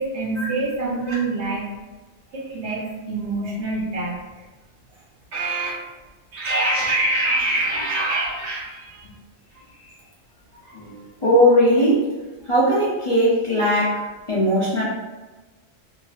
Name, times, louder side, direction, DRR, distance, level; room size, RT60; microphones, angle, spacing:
voice 1, 0.0-1.7 2.3-4.4 5.3-5.8 6.3-9.1, right 2 dB, 75° right, -4 dB, 1.1 m, -25 dB
voice 2, 10.7-12.0 12.4-14.0 14.3-14.8, equal, 40° left, -8 dB, 0.5 m, -19 dB
2.9 x 2.7 x 2.3 m, 1.2 s
omnidirectional pair, 1.2 m